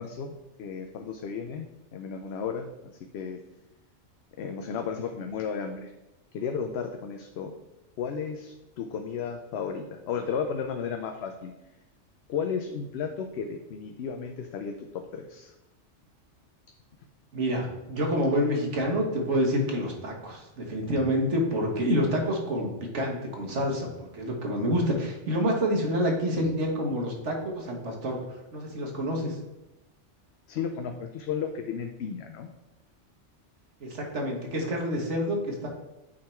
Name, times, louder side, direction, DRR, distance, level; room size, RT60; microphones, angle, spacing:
voice 1, 0.0-1.7 1.9-2.7 3.1-3.4 4.4-5.9 6.3-7.5 8.0-11.5 12.3-15.5 30.5-32.5, left 6 dB, 65° left, 5 dB, 0.8 m, -33 dB
voice 2, 17.3-29.4 33.8-35.7, equal, 75° right, 0 dB, 1.7 m, -28 dB
8.7 x 3.7 x 4.4 m, 0.98 s
omnidirectional pair, 1.2 m